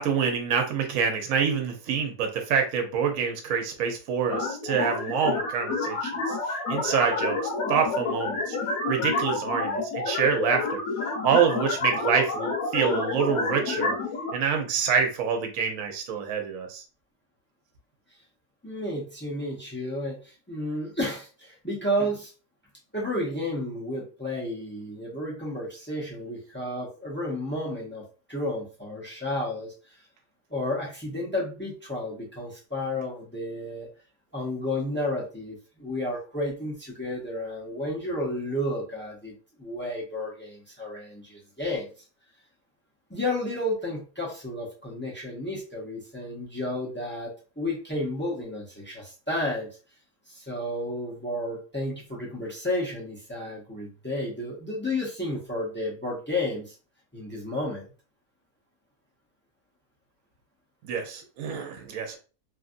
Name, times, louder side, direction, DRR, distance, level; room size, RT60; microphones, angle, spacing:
voice 1, 0.0-7.4 7.7-8.6 8.9-10.8 11.2-13.9 14.3-16.8 60.8-62.2, right 6 dB, 65° right, 4 dB, 1.0 m, -26 dB
sound 1, 4.3-14.3, left 3 dB, 65° left, 1.3 m, -29 dB
voice 2, 18.6-22.3 22.9-29.7 30.5-33.9 34.3-41.9 43.1-49.7 50.3-56.7 57.1-57.9, left 1 dB, 15° left, -4 dB, 0.4 m, -32 dB
3.1 x 2.5 x 2.5 m, 0.35 s
omnidirectional pair, 1.7 m